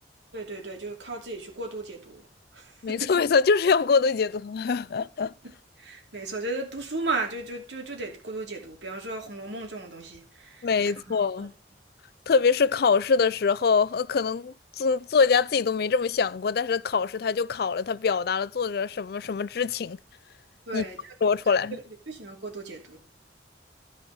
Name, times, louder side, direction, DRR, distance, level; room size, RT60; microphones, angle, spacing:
voice 1, 0.3-2.3 2.5-3.1 5.8-11.5 20.7-21.2 22.1-23.0, right 3 dB, 85° right, 2.7 m, -35 dB
voice 2, 2.8-5.3 10.6-11.5 12.3-20.0 20.7-20.8 21.2-21.8, left 5 dB, 60° left, 0.4 m, -24 dB
13.5 x 5.0 x 5.5 m
head